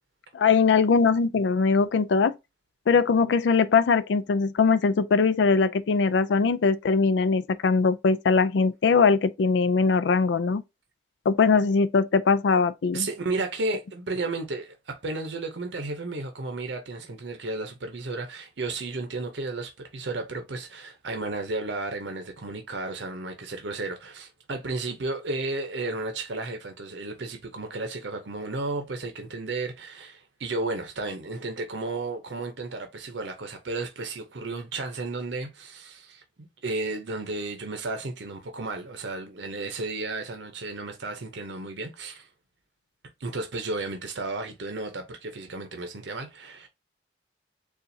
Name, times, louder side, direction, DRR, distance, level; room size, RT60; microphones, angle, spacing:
voice 1, 0.3-2.3 2.9-10.6 11.3-13.1, left 5 dB, 80° left, 0.4 m, -21 dB
voice 2, 12.9-42.3 43.2-46.7, right 3 dB, 80° right, 0.7 m, -33 dB
6.8 x 2.4 x 2.7 m
head